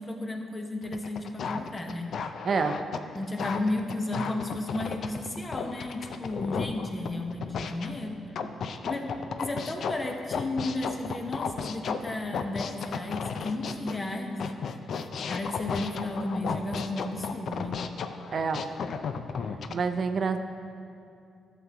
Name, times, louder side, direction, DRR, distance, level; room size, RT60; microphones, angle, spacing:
voice 1, 0.0-2.1 3.1-8.2 8.8-9.0 9.4-14.4 15.3-17.7, left 2 dB, 30° left, 3 dB, 1.0 m, -33 dB
sound 1, 0.8-7.9 8.4-14.0 14.4-19.7, left 6 dB, 65° left, 0.4 m, -34 dB
voice 2, 2.4-2.8 18.3-18.6 19.7-20.4, right 5 dB, 55° right, 8 dB, 0.5 m, -27 dB
12.0 x 7.1 x 2.9 m, 2.6 s
supercardioid pair, 60°, 0 cm